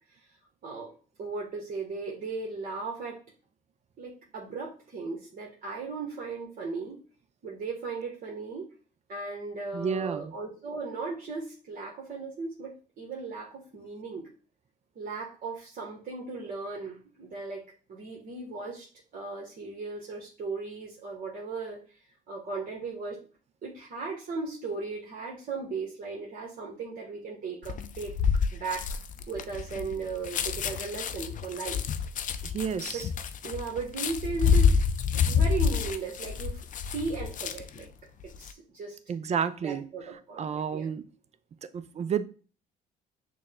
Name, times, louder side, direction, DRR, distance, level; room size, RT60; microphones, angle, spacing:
voice 1, 1.2-3.2 4.0-7.0 7.4-8.7 9.1-14.3 14.9-22.0 22.3-23.2 23.6-29.0 29.3-31.8 32.9-33.0 33.4-34.8 35.3-37.9 38.4-39.0 39.6-40.9, right 4 dB, 55° right, -3 dB, 1.2 m, -37 dB
voice 2, 9.7-10.3 32.4-33.1 39.1-39.8 40.4-41.0 41.7-42.2, right 7 dB, 40° right, 12 dB, 0.5 m, -30 dB
sound 1, 27.6-37.8 38.2-38.5, left 6 dB, 50° left, 0.5 m, -28 dB
6.2 x 2.2 x 3.6 m, 0.38 s
cardioid pair, 85°, 17 cm